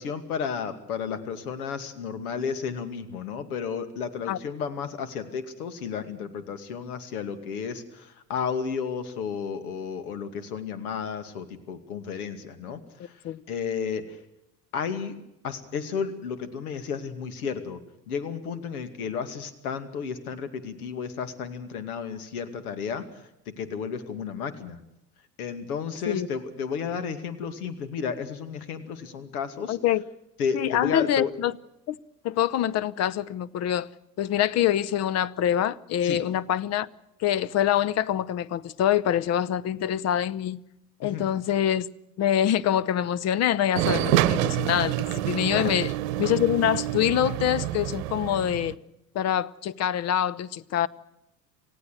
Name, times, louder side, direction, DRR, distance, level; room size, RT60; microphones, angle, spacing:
voice 1, 0.0-13.2 13.5-14.2 14.7-15.2 15.4-17.8 18.1-24.8 25.4-29.8 30.4-31.4 36.0-36.2 41.0-41.3 45.5-45.7, left 6 dB, 65° left, 2.5 m, -32 dB
voice 2, 29.7-30.0 30.5-31.5 31.9-32.0 32.2-33.9 34.2-36.9 37.2-40.6 41.0-41.9 42.2-45.9 46.2-48.7 49.1-50.9, left 11 dB, 35° left, 0.8 m, -25 dB
sound 1, 43.8-48.7, right 14 dB, 55° right, 1.1 m, -27 dB
28.5 x 16.0 x 6.5 m
figure-of-eight pair, 75°, 48 cm